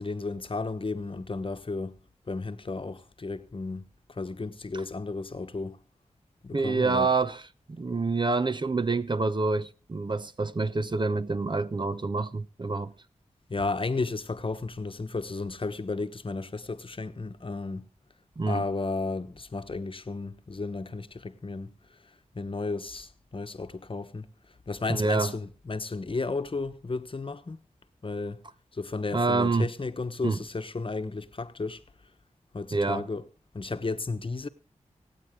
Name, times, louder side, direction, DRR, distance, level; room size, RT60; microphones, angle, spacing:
voice 1, 0.0-2.0 2.3-5.8 6.4-7.1 13.5-17.9 18.5-27.6 28.0-28.4 28.7-31.8 32.5-33.2 33.5-34.5, left 3 dB, 45° left, 1.1 m, -33 dB
voice 2, 6.5-7.4 7.7-12.9 18.4-18.6 24.9-25.3 29.1-29.7 30.2-30.4 32.7-33.1, right 3 dB, 35° right, 0.8 m, -27 dB
26.0 x 8.7 x 3.7 m
cardioid pair, 50°, 13 cm